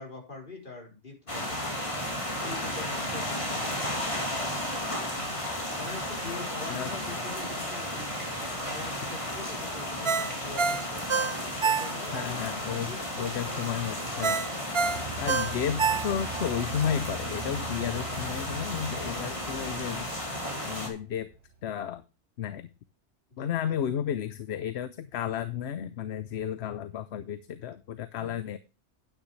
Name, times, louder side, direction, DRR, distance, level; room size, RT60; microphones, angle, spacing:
voice 1, 0.0-1.7 2.4-4.7 5.8-8.1 8.4-12.4 12.8-13.3 23.4-23.8, left 3 dB, 45° left, 0 dB, 4.1 m, -44 dB
sound 1, 1.3-20.9, left 1 dB, 25° left, 2.7 m, -34 dB
Ringtone, 10.0-12.3 12.7-12.8 14.2-16.5 16.9-17.0, right 5 dB, 40° right, 0.4 m, -27 dB
voice 2, 12.1-14.5 15.2-20.1 20.6-21.3 21.6-22.0 22.4-22.7 23.4-28.6, left 9 dB, 70° left, 13 dB, 0.9 m, -33 dB
sound 2, 14.8-21.8, right 2 dB, 65° right, 1.6 m, -43 dB
9.6 x 9.6 x 3.1 m, 0.31 s
omnidirectional pair, 1.2 m